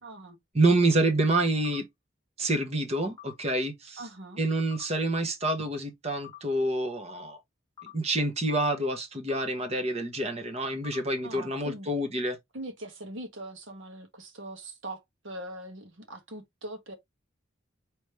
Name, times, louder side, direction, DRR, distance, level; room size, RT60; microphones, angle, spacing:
voice 1, 0.0-0.4 4.0-4.4 11.2-11.9 12.5-16.9, right 1 dB, 70° right, 1.4 m, -41 dB
voice 2, 0.5-1.9 2.4-4.0 4.4-7.4 7.9-12.4, right 2 dB, 30° right, 1.0 m, -27 dB
scanner blip, 1.6-1.8 3.2-3.4 4.7-4.9 6.2-6.4 7.8-8.0 9.3-9.5 10.8-11.0, left 12 dB, 20° left, 1.4 m, -46 dB
5.0 x 3.1 x 3.1 m
head